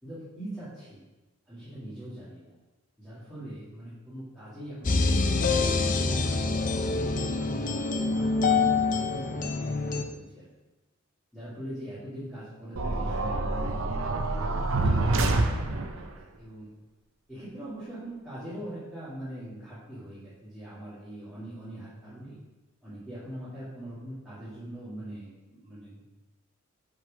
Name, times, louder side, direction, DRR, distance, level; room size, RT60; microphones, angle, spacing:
voice 1, 0.0-1.0 1.5-2.5 3.0-9.7 10.1-10.5 11.3-14.4 14.8-16.7 17.3-22.4 22.8-26.0, right 1 dB, 5° right, -13 dB, 2.2 m, -42 dB
sound 1, 4.8-10.0, left 4 dB, 35° left, 0.5 m, -26 dB
sound 2, 12.8-16.1, right 2 dB, 65° right, 0.7 m, -27 dB
6.3 x 5.3 x 5.3 m, 1.1 s
head